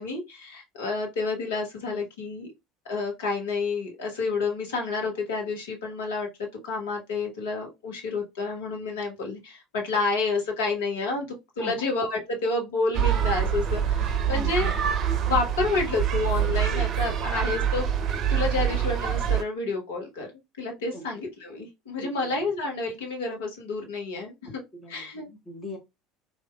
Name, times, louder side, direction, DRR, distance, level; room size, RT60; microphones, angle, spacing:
voice 1, 0.0-2.5 2.9-6.3 6.6-11.3 11.6-14.7 15.2-17.9 18.3-20.3 20.6-24.6 24.9-25.3, left 3 dB, 70° left, 1.3 m, -29 dB
sound 1, 12.9-19.4, right 9 dB, 45° right, 0.6 m, -25 dB
voice 2, 14.3-14.7 20.9-21.0 22.0-22.3 24.4-25.8, left 1 dB, 25° left, 1.1 m, -40 dB
4.2 x 2.7 x 2.2 m
figure-of-eight pair, 65°, 0 cm